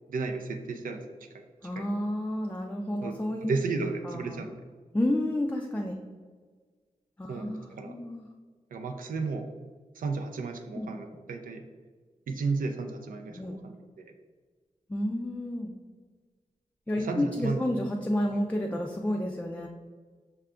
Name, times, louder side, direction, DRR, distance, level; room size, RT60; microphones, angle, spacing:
voice 1, 0.1-1.0 1.3-1.9 3.0-4.5 7.3-8.0 8.7-9.5 10.0-11.6 12.3-14.1 17.0-17.6, right 4 dB, 85° right, 5 dB, 0.4 m, -33 dB
voice 2, 1.6-3.5 4.0-4.4 4.9-6.0 7.2-8.3 10.7-10.9 13.3-13.6 14.9-15.7 16.9-19.7, left 1 dB, 10° left, 1 dB, 0.3 m, -30 dB
5.7 x 2.2 x 3.6 m, 1.5 s
wide cardioid pair, 100°, 14 cm